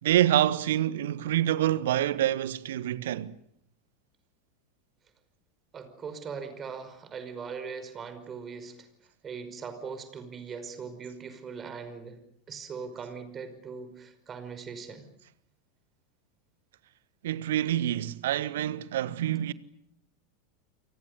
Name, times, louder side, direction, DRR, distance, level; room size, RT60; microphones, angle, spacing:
voice 1, 0.0-3.4 17.2-19.5, right 12 dB, 60° right, 1.3 m, -26 dB
voice 2, 5.7-8.7 9.2-12.2 12.5-15.0, right 5 dB, 25° right, 5.4 m, -40 dB
29.5 x 24.5 x 6.9 m
figure-of-eight pair, 85°, 0 cm